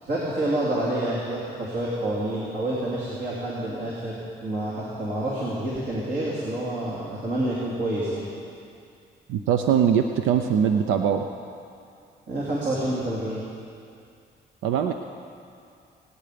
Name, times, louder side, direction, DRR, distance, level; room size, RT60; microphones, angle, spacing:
voice 1, 0.0-8.3 12.3-13.4, right 1 dB, 55° right, -7 dB, 3.3 m, -28 dB
voice 2, 9.3-11.3 14.6-14.9, right 8 dB, 90° right, 6 dB, 0.7 m, -22 dB
24.0 x 9.7 x 5.1 m, 2.5 s
cardioid pair, 90°, 20 cm